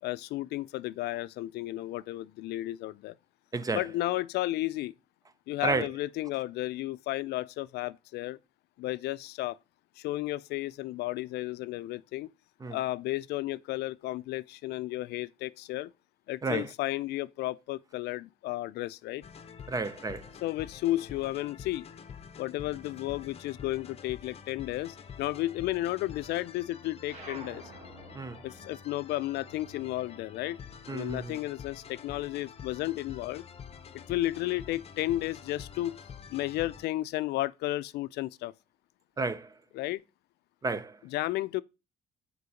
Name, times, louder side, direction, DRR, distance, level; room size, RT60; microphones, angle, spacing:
voice 1, 0.0-3.2 3.7-4.9 5.5-8.4 8.8-9.6 10.0-12.3 12.7-15.9 16.3-19.2 20.4-21.9 22.4-27.6 28.4-30.6 30.9-33.4 33.9-36.0 36.3-38.5 39.7-40.0 41.0-41.6, left 16 dB, 75° left, 0.4 m, -33 dB
sound 1, 19.2-36.9, left 7 dB, 35° left, 0.8 m, -48 dB
voice 2, 19.7-20.2 28.1-28.4 30.9-31.4 39.2-39.5 40.6-40.9, right 3 dB, 20° right, 0.5 m, -31 dB
sound 2, 27.0-31.9 32.2-33.7, right 2 dB, 40° right, 2.4 m, -51 dB
6.7 x 4.6 x 4.9 m
cardioid pair, 110°, 17 cm